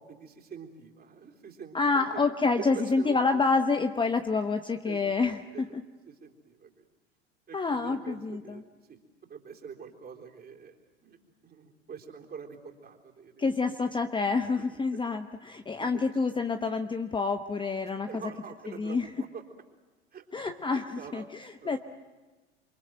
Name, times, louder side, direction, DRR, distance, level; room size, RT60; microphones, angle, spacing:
voice 1, 0.0-2.2 2.6-3.4 4.9-5.2 5.5-6.9 7.5-11.2 11.4-13.6 14.6-15.0 15.8-16.1 17.6-19.4 20.1-21.8, right 6 dB, 30° right, 1 dB, 3.9 m, -45 dB
voice 2, 1.7-5.8 7.5-8.6 13.4-18.2 18.8-19.1 20.3-20.8 21.1-21.2 21.6-21.8, left 4 dB, 15° left, 7 dB, 0.9 m, -28 dB
28.0 x 24.0 x 7.8 m, 1.2 s
hypercardioid pair, 85°, 32 cm